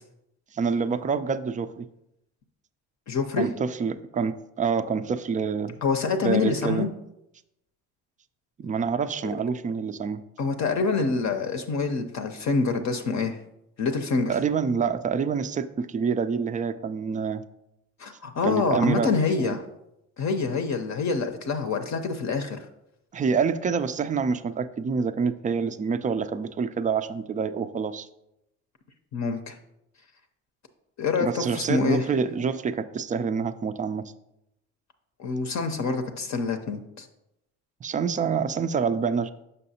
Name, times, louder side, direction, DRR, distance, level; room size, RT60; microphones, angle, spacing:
voice 1, 0.5-1.9 3.4-5.8 6.2-6.9 8.6-10.2 14.3-17.4 18.4-19.1 19.4-19.6 23.1-28.1 31.2-34.1 37.8-39.3, right 5 dB, 20° right, 12 dB, 0.3 m, -27 dB
voice 2, 3.1-3.5 5.8-6.9 10.4-13.4 13.8-14.3 18.0-19.6 20.2-22.6 29.1-29.6 31.0-32.0 35.2-37.1, left 4 dB, 45° left, 5 dB, 0.7 m, -26 dB
6.5 x 5.4 x 2.8 m, 0.85 s
hypercardioid pair, 60°, 38 cm